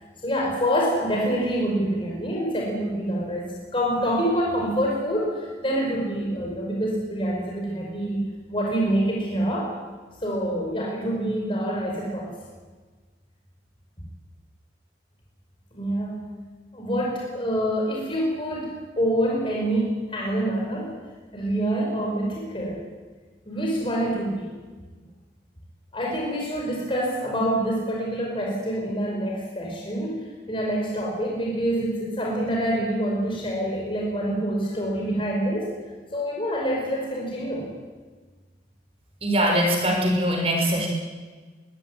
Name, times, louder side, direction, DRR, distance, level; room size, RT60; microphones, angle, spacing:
voice 1, 0.2-8.2 8.5-9.7 10.2-12.3 15.7-16.2 16.7-20.9 21.3-22.8 23.5-24.4 25.9-35.7 36.1-37.7, equal, 30° left, -2 dB, 5.0 m, -26 dB
voice 2, 39.2-40.9, equal, 35° right, 1 dB, 5.8 m, -22 dB
24.0 x 15.0 x 9.8 m, 1.4 s
head